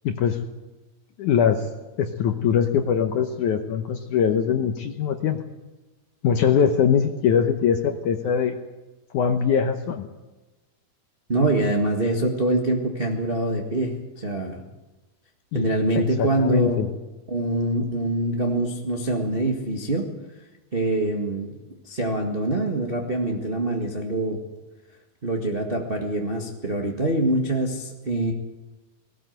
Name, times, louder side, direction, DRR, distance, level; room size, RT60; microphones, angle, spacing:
voice 1, 0.0-0.4 1.2-1.7 2.0-5.4 6.2-8.6 9.1-10.1 15.5-15.7 16.0-16.9, left 7 dB, 70° left, 5 dB, 2.1 m, -22 dB
voice 2, 11.3-14.6 15.5-16.8 17.3-20.1 20.7-21.6 21.8-24.4 25.2-28.3, right 1 dB, 55° right, 0 dB, 0.6 m, -24 dB
19.5 x 17.5 x 8.0 m, 1.1 s
omnidirectional pair, 4.5 m